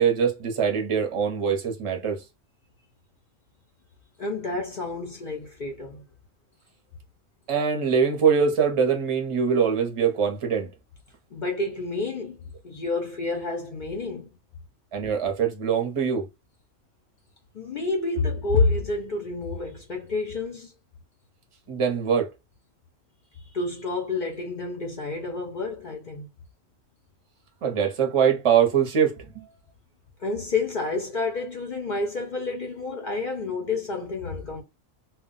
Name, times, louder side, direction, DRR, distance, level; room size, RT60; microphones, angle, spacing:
voice 1, 0.0-2.2 7.5-10.7 14.9-16.3 21.7-22.3 27.6-29.5, right 7 dB, 35° right, 0.6 m, -23 dB
voice 2, 4.2-6.0 11.3-12.4 12.6-14.3 17.5-20.7 23.5-26.3 30.2-34.6, left 3 dB, 60° left, 0.5 m, -29 dB
2.2 x 2.1 x 3.8 m
omnidirectional pair, 1.3 m